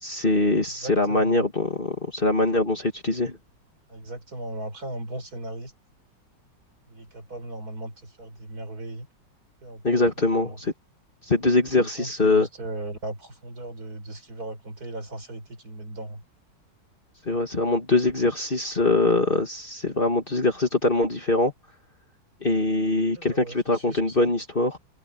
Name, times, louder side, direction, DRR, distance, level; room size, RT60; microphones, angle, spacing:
voice 1, 0.0-3.3 9.8-10.7 11.3-12.5 17.3-21.5 22.4-24.8, left 2 dB, 30° left, 2.3 m, -23 dB
voice 2, 0.7-1.5 3.9-5.7 6.9-9.1 9.6-10.0 10.3-10.6 11.8-16.2 23.2-24.3, right 2 dB, 55° right, 5.0 m, -37 dB
omnidirectional pair, 2.0 m